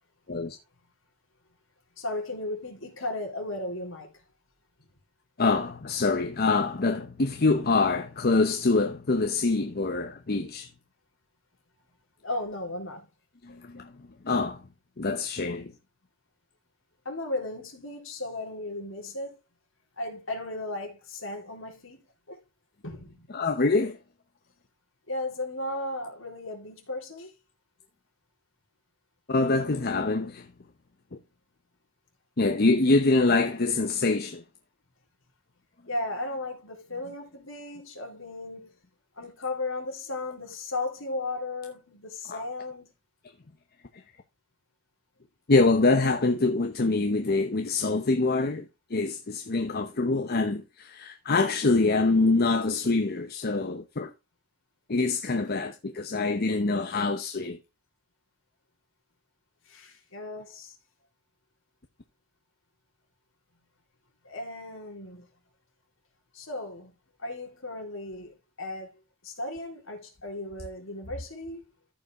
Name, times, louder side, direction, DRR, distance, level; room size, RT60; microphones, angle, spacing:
voice 1, 2.0-4.1 12.2-13.1 17.1-19.4 20.0-22.0 22.3-22.4 22.8-23.3 25.1-27.3 35.9-38.7 39.2-42.9 59.7-60.8 64.2-65.3 66.3-66.9 67.2-68.9 69.2-71.6, left 2 dB, 70° left, 3.8 m, -35 dB
voice 2, 5.4-10.7 13.4-13.9 14.2-14.6 15.0-15.7 23.3-24.0 29.3-30.5 32.4-34.4 42.3-42.4 45.5-48.6 48.9-54.1 54.9-57.6, left 3 dB, 50° left, 0.9 m, -25 dB
14.0 x 5.5 x 3.6 m
head